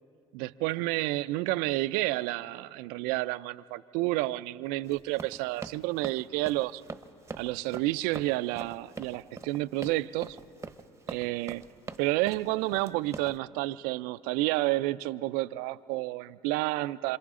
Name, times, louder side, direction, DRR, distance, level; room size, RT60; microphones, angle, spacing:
voice 1, 0.3-6.8 7.4-10.4 11.1-11.6 12.0-17.2, right 19 dB, 75° right, 0.5 m, -30 dB
Run, 4.8-13.4, right 4 dB, 20° right, 1.0 m, -43 dB
27.0 x 26.5 x 3.7 m
hypercardioid pair, 75°, 15 cm